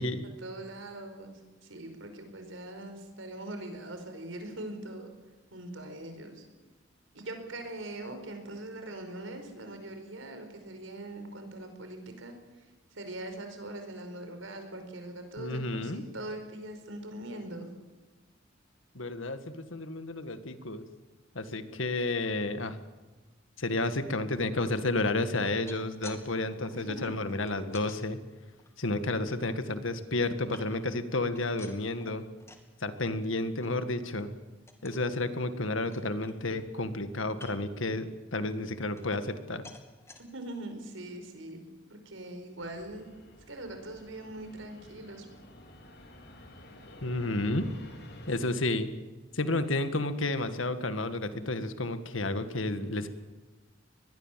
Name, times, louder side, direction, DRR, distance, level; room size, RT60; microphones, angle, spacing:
voice 1, 0.2-1.3 1.6-5.1 5.5-6.4 7.1-12.6 12.9-17.7 26.7-27.2 40.3-41.6 41.9-43.0 43.5-45.2, right 1 dB, 85° right, 6 dB, 5.0 m, -42 dB
voice 2, 15.4-16.0 18.9-20.9 21.3-22.8 23.6-28.2 28.8-32.2 32.8-34.3 34.8-39.6 47.0-47.6 48.3-48.9 49.3-53.1, left 2 dB, 85° left, 10 dB, 1.8 m, -31 dB
sound 1, 25.5-26.2 26.5-28.0 28.5-29.5 30.0-31.0 31.3-32.7 33.0-33.3 33.6-33.7 34.1-34.3 34.7-35.1 35.5-35.6 35.9-36.7 37.3-37.8 38.3-39.4 39.6-40.2 40.8-40.9 41.2-41.3, left 2 dB, 15° left, 2.6 m, -52 dB
Fixed-wing aircraft airplane, 42.6-48.4, left 1 dB, 60° left, 3.8 m, -51 dB
23.5 x 21.0 x 7.6 m, 1.2 s
head